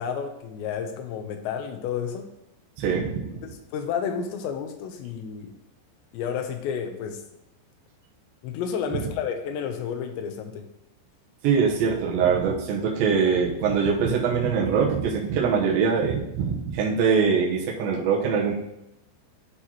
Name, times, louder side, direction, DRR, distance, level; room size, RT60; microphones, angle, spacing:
voice 1, 0.0-2.3 3.4-5.6 6.1-7.2 8.4-10.6, left 7 dB, 80° left, 6 dB, 2.9 m, -31 dB
voice 2, 2.8-3.4 8.9-9.0 11.4-18.6, right 6 dB, 70° right, -3 dB, 2.4 m, -23 dB
11.5 x 4.4 x 2.9 m, 0.87 s
omnidirectional pair, 5.2 m